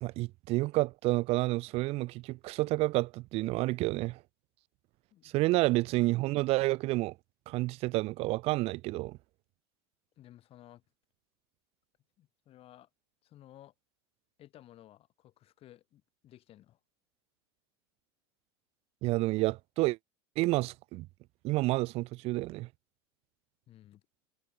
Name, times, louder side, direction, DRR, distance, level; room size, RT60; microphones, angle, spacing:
voice 1, 0.0-4.2 5.2-7.1 7.5-9.2 19.0-20.0 20.4-21.1 21.4-22.7, right 20 dB, 50° right, 0.5 m, -29 dB
voice 2, 10.2-10.8 12.2-12.9 13.2-13.7 14.4-16.8 23.7-24.0, left 13 dB, 45° left, 6.9 m, -56 dB
hypercardioid pair, 90°, 14 cm